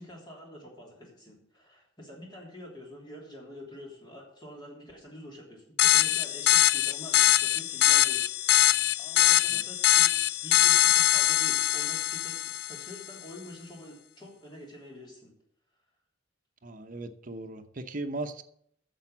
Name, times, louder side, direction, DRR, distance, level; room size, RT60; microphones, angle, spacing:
voice 1, 0.0-8.3 9.0-15.3, left 1 dB, 25° left, -2 dB, 3.3 m, -47 dB
sound 1, 5.8-12.9, left 14 dB, 60° left, 0.3 m, -23 dB
voice 2, 16.6-18.4, right 2 dB, 45° right, 8 dB, 0.8 m, -37 dB
8.9 x 7.0 x 7.3 m, 0.69 s
head